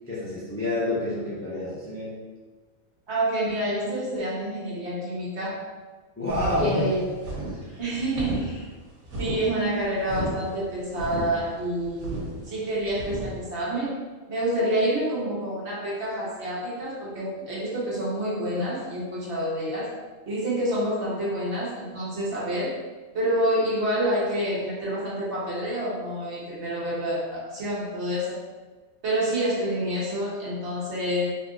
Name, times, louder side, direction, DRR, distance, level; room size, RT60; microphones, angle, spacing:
voice 1, 0.1-2.1 6.2-6.9, left 1 dB, 20° left, -8 dB, 0.4 m, -28 dB
voice 2, 3.1-5.7 6.6-7.0 7.8-8.6 9.2-12.2 12.5-19.9 20.3-22.7 23.1-28.4 29.0-31.3, right 1 dB, 55° right, -7 dB, 1.2 m, -28 dB
sound 1, 6.3-13.4, right 1 dB, 75° right, 1.3 m, -34 dB
2.8 x 2.5 x 3.6 m, 1.3 s
omnidirectional pair, 1.4 m